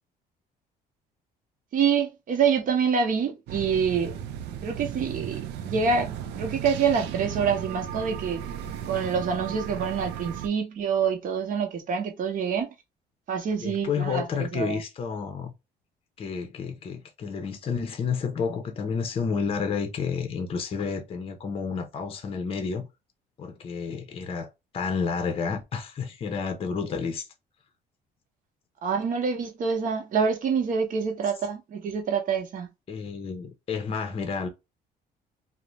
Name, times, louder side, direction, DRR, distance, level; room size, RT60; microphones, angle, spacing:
voice 1, 1.7-4.2 4.6-6.1 6.4-8.4 8.9-12.7 13.3-14.8 28.8-32.7, right 6 dB, 50° right, 0.8 m, -26 dB
sound 1, 3.5-10.5, right 9 dB, 85° right, 0.4 m, -35 dB
voice 2, 13.6-15.5 16.2-22.9 23.4-24.5 24.7-27.3 32.9-34.5, left 5 dB, 35° left, 0.5 m, -30 dB
2.5 x 2.0 x 3.0 m
cardioid pair, 110°, 17 cm